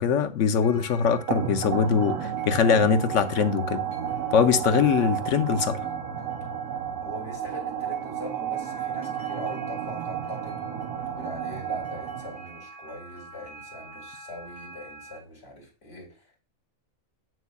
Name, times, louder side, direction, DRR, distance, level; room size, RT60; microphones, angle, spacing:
voice 1, 0.0-3.9 4.3-5.9, left 6 dB, 70° left, 1.0 m, -22 dB
sound 1, 0.6-15.2, right 1 dB, 50° right, 4.4 m, -47 dB
sound 2, 1.3-12.6, right 9 dB, 80° right, 1.1 m, -32 dB
voice 2, 7.0-16.4, left 1 dB, 50° left, 2.8 m, -41 dB
8.0 x 6.1 x 2.3 m
omnidirectional pair, 1.4 m